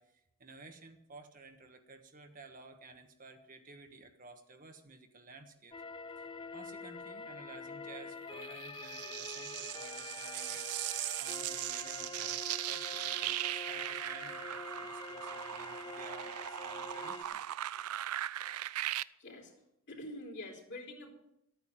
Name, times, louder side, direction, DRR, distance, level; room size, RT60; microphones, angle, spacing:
voice 1, 0.0-5.7 6.2-6.3 6.5-10.7 11.2-17.4, right 3 dB, 40° right, 5 dB, 1.3 m, -54 dB
sound 1, 5.7-17.2, left 4 dB, 20° left, 0.4 m, -46 dB
sound 2, 8.4-19.0, right 14 dB, 90° right, 0.4 m, -39 dB
voice 2, 19.2-19.6 19.9-21.1, left 1 dB, 50° left, 0 dB, 3.4 m, -46 dB
13.5 x 9.1 x 7.4 m, 0.80 s
head